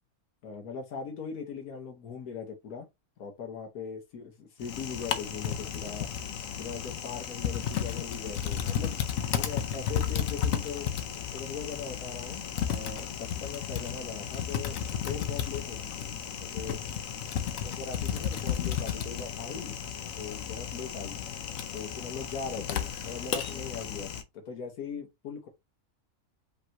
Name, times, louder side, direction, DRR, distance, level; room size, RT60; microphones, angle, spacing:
voice 1, 0.4-2.8 3.2-6.1 6.6-10.9 11.3-14.8 15.0-16.1 16.4-16.8 17.6-19.8 20.1-21.2 21.7-25.5, left 6 dB, 85° left, 1.4 m, -40 dB
Typing, 4.6-24.2, left 8 dB, 70° left, 1.1 m, -33 dB
5.3 x 3.0 x 2.9 m
omnidirectional pair, 1.5 m